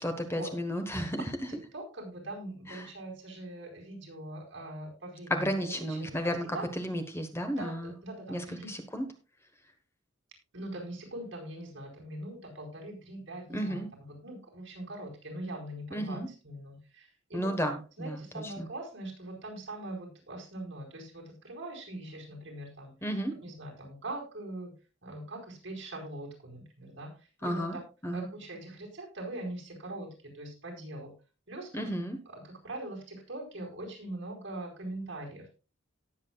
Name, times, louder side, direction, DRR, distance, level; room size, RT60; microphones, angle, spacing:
voice 1, 0.0-1.5 2.7-2.9 5.3-6.5 6.8-7.9 8.3-9.0 13.5-13.9 15.9-16.3 17.3-18.7 23.0-23.3 27.4-27.8 28.0-28.3 31.7-32.2, equal, 15° left, 6 dB, 1.2 m, -33 dB
voice 2, 1.7-6.7 7.6-7.7 8.0-8.7 10.5-17.5 18.0-22.9 23.4-24.7 25.0-27.6 28.1-31.1 31.5-31.9 32.3-35.5, right 1 dB, 65° right, 0 dB, 4.8 m, -42 dB
18.5 x 7.5 x 2.3 m, 0.32 s
head